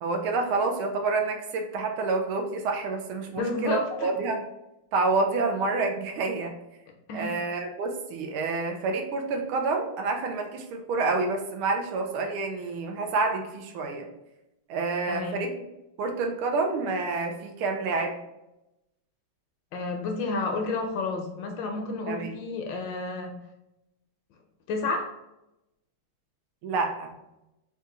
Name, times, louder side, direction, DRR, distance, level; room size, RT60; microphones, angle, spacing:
voice 1, 0.0-4.4 4.9-6.5 7.1-14.1 14.7-15.5 16.0-18.1 22.1-22.4 26.6-27.1, right 3 dB, 90° right, 3 dB, 1.5 m, -28 dB
voice 2, 3.4-4.1 7.1-7.4 15.1-15.4 19.7-23.4 24.7-25.1, left 3 dB, 75° left, 3 dB, 1.1 m, -30 dB
4.2 x 2.4 x 3.7 m, 0.91 s
omnidirectional pair, 2.3 m